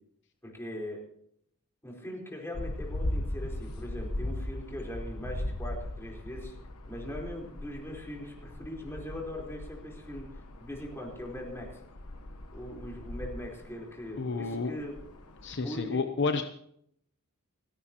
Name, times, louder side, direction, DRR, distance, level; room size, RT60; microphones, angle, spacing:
voice 1, 0.4-1.0 1.8-6.5 6.9-10.3 10.6-11.8 12.5-14.9 15.6-16.0, left 1 dB, 10° left, -2 dB, 4.4 m, -40 dB
sound 1, 2.5-15.7, left 1 dB, 75° left, 1.3 m, -39 dB
voice 2, 14.2-14.7 15.4-16.4, left 4 dB, 55° left, 6 dB, 0.9 m, -30 dB
29.5 x 10.0 x 3.1 m, 0.69 s
head